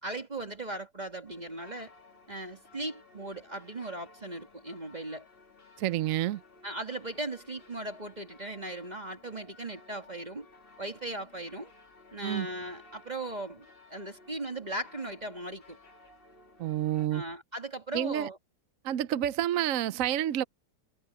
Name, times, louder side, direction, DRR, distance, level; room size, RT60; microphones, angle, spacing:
voice 1, 0.0-1.9 2.3-5.3 6.6-10.5 10.8-11.7 12.1-15.8 17.1-18.4, right 1 dB, 25° right, 1.9 m, -38 dB
sound 1, 1.3-17.1, left 3 dB, 35° left, 1.8 m, -57 dB
voice 2, 5.8-6.4 12.2-12.5 16.6-17.2 17.9-18.3 18.8-20.4, right 12 dB, 65° right, 0.8 m, -29 dB
omnidirectional pair, 1.9 m